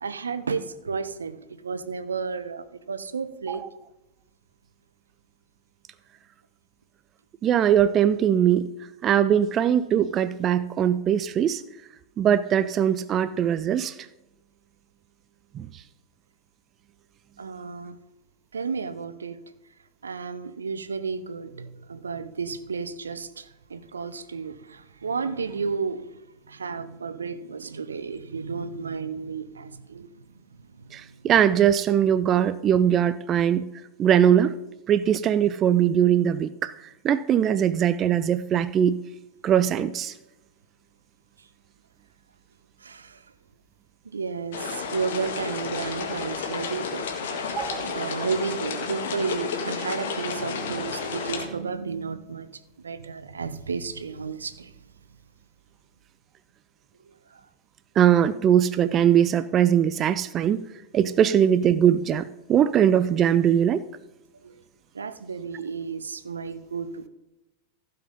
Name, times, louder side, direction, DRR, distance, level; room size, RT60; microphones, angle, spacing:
voice 1, 0.0-3.6 17.4-18.0 18.5-19.4 20.0-23.4 23.7-26.0 26.5-30.1 42.8-43.1 44.1-44.6 44.9-47.1 47.9-52.5 52.8-54.7 64.4-64.5 64.9-67.1, right 5 dB, 70° right, 14 dB, 0.6 m, -32 dB
voice 2, 7.4-8.7 9.0-11.6 12.2-13.9 15.6-15.7 30.9-33.6 34.0-34.5 34.9-36.7 37.0-39.0 39.4-40.1 47.6-47.9 58.0-60.7 60.9-63.8, right 9 dB, 30° right, 14 dB, 0.4 m, -21 dB
sound 1, 44.5-51.5, left 5 dB, 60° left, 1.5 m, -31 dB
15.0 x 5.7 x 5.3 m, 0.97 s
figure-of-eight pair, 90°, 0 cm